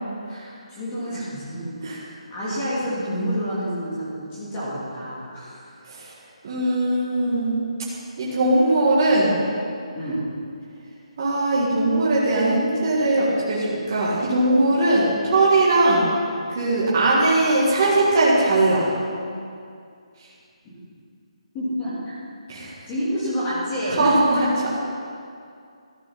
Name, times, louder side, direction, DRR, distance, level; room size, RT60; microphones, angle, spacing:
voice 1, 0.3-5.9 9.9-10.2 21.5-22.1 22.9-24.1, equal, 15° left, -11 dB, 2.5 m, -29 dB
voice 2, 6.4-7.5 8.2-9.4 11.2-16.1 16.5-18.9 22.5-22.7 24.0-24.7, right 2 dB, 30° right, -7 dB, 1.7 m, -20 dB
13.0 x 6.1 x 5.8 m, 2.3 s
hypercardioid pair, 175°, 4 cm